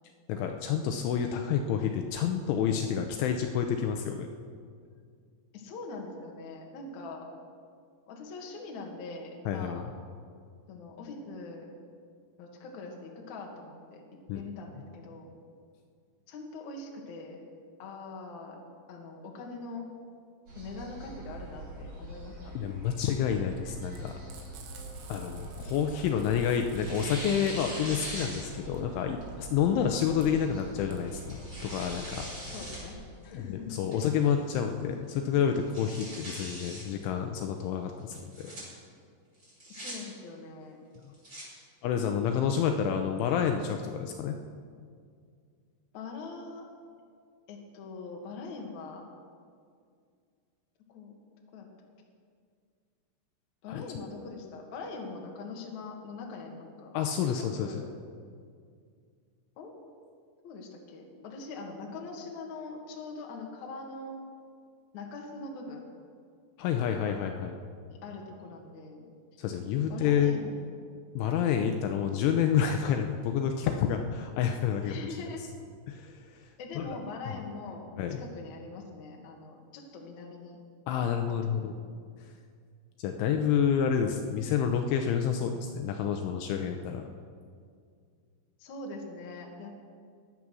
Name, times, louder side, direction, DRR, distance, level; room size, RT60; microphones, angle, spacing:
voice 1, 0.3-4.3 9.5-9.9 14.3-14.4 22.6-24.1 25.1-32.3 33.3-38.5 41.8-44.4 53.7-53.8 56.9-57.8 66.6-67.6 69.4-70.4 71.2-75.0 75.9-76.5 76.8-76.9 77.3-77.4 78.0-78.2 80.9-81.8 83.0-87.0, left 8 dB, 80° left, 5 dB, 3.0 m, -29 dB
voice 2, 5.5-7.3 8.1-9.9 10.7-11.7 12.4-14.0 14.3-15.3 16.3-17.5 17.8-18.6 18.9-19.8 20.5-22.5 29.8-29.9 32.4-33.0 33.2-33.8 39.7-40.8 42.2-42.4 45.9-46.6 47.5-49.1 50.9-51.1 51.5-51.7 53.6-56.9 57.4-57.9 59.6-59.7 60.4-64.2 64.9-65.8 67.8-69.0 69.9-70.8 74.8-75.4 76.6-77.9 78.2-80.6 81.5-81.9 88.6-89.7, left 3 dB, 55° left, 0 dB, 2.3 m, -42 dB
sound 1, 20.5-32.9, right 1 dB, 35° right, 5.4 m, -44 dB
Frying (food), 23.9-32.7, right 6 dB, 85° right, 4.4 m, -54 dB
Tearing, 24.9-26.3 26.7-28.8 29.2-29.3 30.2-30.5 31.1-32.8 33.2-33.3 33.9-34.3 34.7-34.8 35.1-35.2 35.5-36.8 38.1-38.6 39.4-39.9 40.9-41.4, equal, 20° right, 5.2 m, -42 dB
22.0 x 8.4 x 6.2 m, 2.2 s
omnidirectional pair, 5.9 m